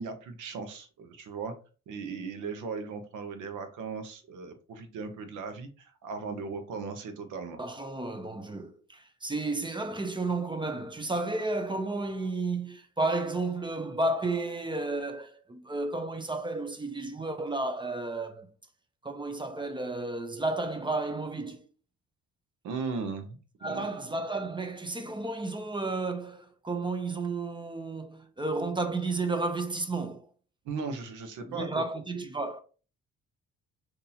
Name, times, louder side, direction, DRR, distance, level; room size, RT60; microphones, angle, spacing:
voice 1, 0.0-1.5 1.9-7.6 22.6-23.4 23.7-23.9 30.6-31.8, right 4 dB, 85° right, 0.8 m, -37 dB
voice 2, 7.6-18.5 19.0-21.7 23.6-30.3 31.5-32.6, right 2 dB, 15° right, 0.5 m, -32 dB
3.9 x 2.7 x 2.8 m
cardioid pair, 90°, 30 cm